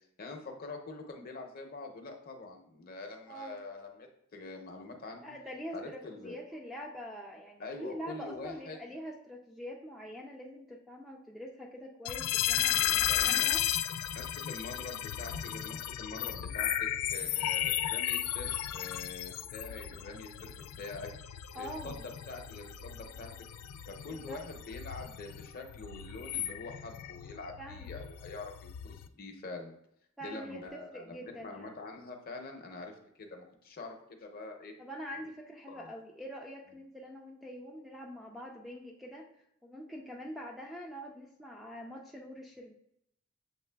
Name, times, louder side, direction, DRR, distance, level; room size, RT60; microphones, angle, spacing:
voice 1, 0.2-5.3 5.7-6.4 7.6-8.8 12.5-13.5 14.1-20.5 20.8-21.1 21.5-21.9 22.3-23.3 23.9-29.8 30.2-32.9 33.2-34.7 35.7-35.9, left 3 dB, 45° left, 3 dB, 0.6 m, -45 dB
voice 2, 5.2-13.6 21.5-22.1 24.1-24.4 27.6-27.9 30.2-31.7 34.8-39.3 39.6-42.7, equal, ahead, -1 dB, 0.3 m, -44 dB
sound 1, 12.1-29.1, left 11 dB, 85° left, 0.3 m, -34 dB
7.3 x 3.1 x 2.2 m, 0.75 s
head